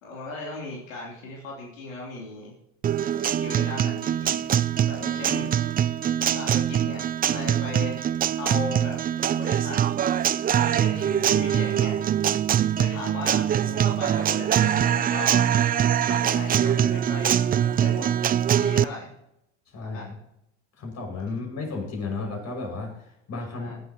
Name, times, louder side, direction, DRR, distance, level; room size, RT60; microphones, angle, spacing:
voice 1, 0.0-2.5 3.2-4.5 4.9-5.5 6.2-7.0 7.3-8.0 8.4-9.0 9.4-9.8 10.6-11.9 12.8-15.5 16.1-17.4 17.8-19.1 19.8-20.2 23.5-23.8, left 3 dB, 90° left, -3 dB, 3.3 m, -37 dB
Guitar, 2.8-18.8, right 10 dB, 25° right, 0.4 m, -23 dB
voice 2, 19.7-20.0 20.8-23.7, left 3 dB, 45° left, 2 dB, 6.2 m, -33 dB
18.5 x 11.5 x 3.0 m, 0.82 s
hypercardioid pair, 85°, 38 cm